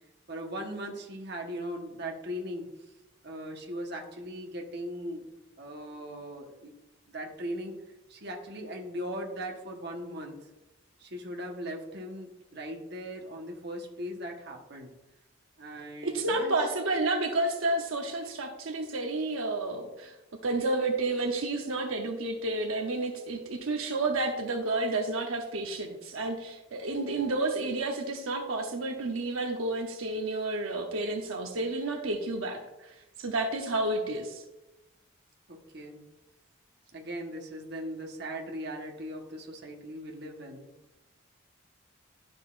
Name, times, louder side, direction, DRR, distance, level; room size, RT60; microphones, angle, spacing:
voice 1, 0.3-2.7 3.2-5.3 5.6-6.7 7.1-7.7 8.1-10.4 11.0-14.9 15.6-16.6 35.5-36.0 36.9-40.7, equal, 55° right, 1 dB, 1.2 m, -39 dB
voice 2, 16.0-20.1 20.4-32.9 33.2-34.4, right 2 dB, 80° right, 2 dB, 0.8 m, -30 dB
11.5 x 6.5 x 2.5 m, 1.0 s
head